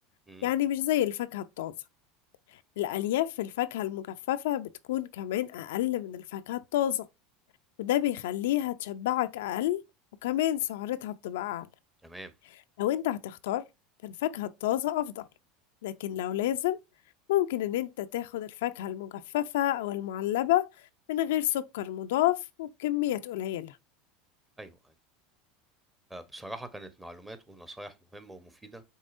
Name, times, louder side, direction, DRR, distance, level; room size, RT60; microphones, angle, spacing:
voice 1, 0.4-1.7 2.8-7.1 7.8-9.8 10.2-11.7 12.8-13.7 14.0-15.2 15.8-16.8 17.3-20.7 21.1-23.8, left 13 dB, 80° left, 0.4 m, -29 dB
voice 2, 12.0-12.3 24.6-24.9 26.1-28.8, right 1 dB, 10° right, 0.8 m, -44 dB
5.4 x 3.5 x 2.5 m
supercardioid pair, 110°, 0 cm